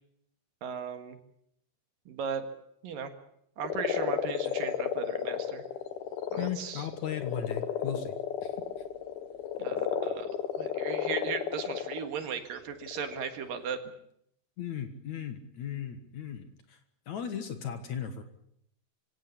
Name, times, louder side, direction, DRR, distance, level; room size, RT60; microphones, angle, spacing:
voice 1, 0.6-1.2 2.1-2.4 2.8-3.1 3.6-5.6 6.3-6.8 9.6-10.3 10.6-13.8, right 7 dB, 65° right, 8 dB, 3.2 m, -37 dB
sound 1, 3.6-12.1 12.7-13.8, left 9 dB, 80° left, 3.5 m, -33 dB
voice 2, 6.4-8.1 8.4-8.5 14.6-16.8 17.1-18.2, left 8 dB, 55° left, 9 dB, 2.5 m, -36 dB
24.5 x 17.0 x 8.6 m, 0.73 s
omnidirectional pair, 4.4 m